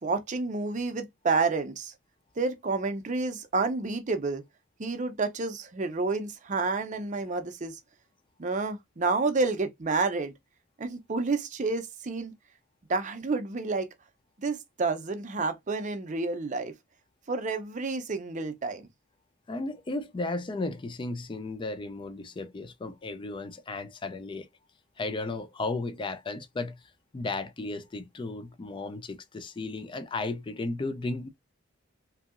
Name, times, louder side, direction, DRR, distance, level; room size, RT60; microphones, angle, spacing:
voice 1, 0.0-1.9 2.4-4.4 4.8-7.8 8.4-10.3 10.8-12.3 12.9-13.9 14.4-16.7 17.3-18.9, right 3 dB, 35° right, 0.5 m, -29 dB
voice 2, 19.5-24.5 25.0-26.8 27.1-31.3, left 2 dB, 25° left, 0.3 m, -34 dB
2.8 x 2.7 x 2.4 m
head